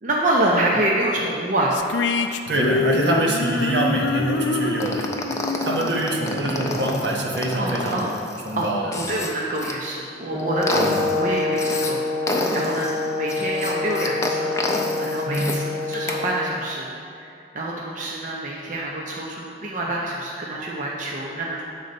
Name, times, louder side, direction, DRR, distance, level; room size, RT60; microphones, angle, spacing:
voice 1, 0.0-1.8 7.6-8.1 8.6-21.6, right 1 dB, 45° right, -3 dB, 0.6 m, -27 dB
sound 1, 1.7-7.1, left 3 dB, 75° left, 0.4 m, -26 dB
voice 2, 2.2-5.1 5.6-8.1 8.4-8.9 10.7-10.9 15.3-15.6, right 1 dB, 70° right, -1 dB, 1.0 m, -24 dB
sound 2, 4.8-9.7 10.2-11.9 12.3-15.6 15.9-16.2, left 2 dB, 15° left, 0.5 m, -29 dB
Brass instrument, 10.3-16.4, left 3 dB, 25° right, 1.4 m, -26 dB
8.2 x 3.9 x 5.2 m, 2.5 s
head